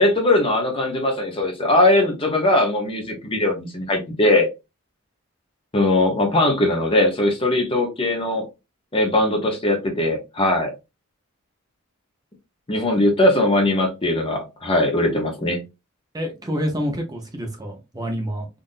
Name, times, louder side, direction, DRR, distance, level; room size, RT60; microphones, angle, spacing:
voice 1, 0.0-4.5 5.7-8.5 8.9-10.7 12.7-15.6, left 1 dB, 25° left, 0.7 m, -20 dB
voice 2, 16.1-18.5, equal, 20° right, 0.7 m, -27 dB
3.8 x 2.5 x 2.5 m
head